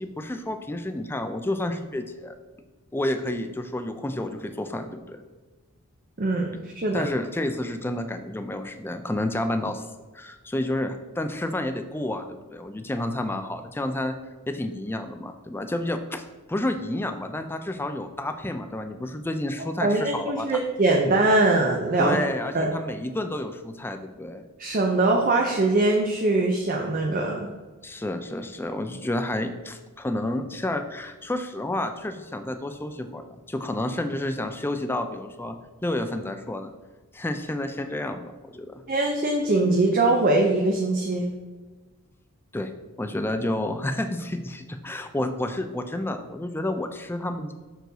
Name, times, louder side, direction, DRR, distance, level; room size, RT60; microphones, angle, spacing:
voice 1, 0.0-2.3 2.9-5.2 6.9-9.8 10.1-14.2 14.5-16.2 16.5-20.6 22.0-24.4 27.8-36.7 37.1-38.8 42.5-42.7 43.0-47.5, left 1 dB, 10° left, 8 dB, 0.4 m, -30 dB
voice 2, 6.2-7.0 19.8-22.2 22.5-22.7 24.6-27.5 38.9-41.3, right 2 dB, 40° right, 1 dB, 0.6 m, -22 dB
6.3 x 4.6 x 3.9 m, 1.3 s
head